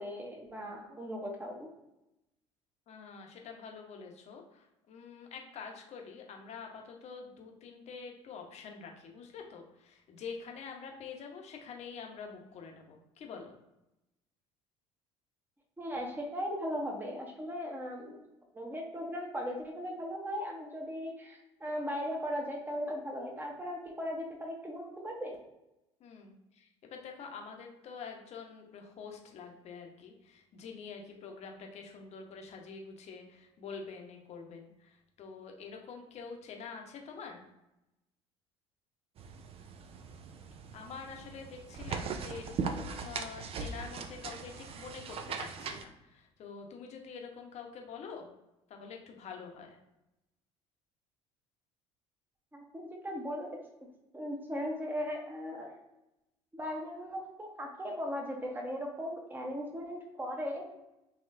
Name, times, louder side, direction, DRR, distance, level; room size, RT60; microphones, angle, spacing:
voice 1, 0.0-1.7 15.8-18.2 18.5-25.4 52.5-53.6 54.1-55.7 56.5-60.6, equal, 15° right, 0 dB, 0.9 m, -38 dB
voice 2, 2.9-13.5 26.0-37.4 40.7-48.3 48.7-49.8, left 5 dB, 45° left, 2 dB, 0.9 m, -46 dB
sound 1, 39.2-45.8, right 5 dB, 40° right, 0.5 m, -40 dB
4.2 x 2.9 x 2.6 m, 0.91 s
hypercardioid pair, 65°, 15 cm